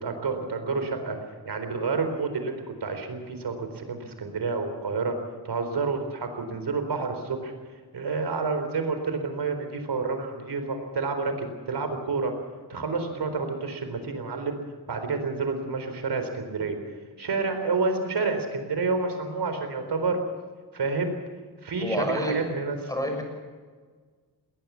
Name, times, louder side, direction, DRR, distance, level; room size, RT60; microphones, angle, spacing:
voice 1, 0.0-1.2 1.5-5.2 5.4-7.5 7.9-12.3 12.7-14.6 14.9-16.8 17.2-20.2 20.7-21.1 21.6-22.9, right 4 dB, 75° right, 7 dB, 4.1 m, -29 dB
voice 2, 21.8-22.4 22.9-23.2, equal, 10° left, 3 dB, 6.5 m, -28 dB
20.0 x 19.0 x 7.1 m, 1.5 s
wide cardioid pair, 110°, 40 cm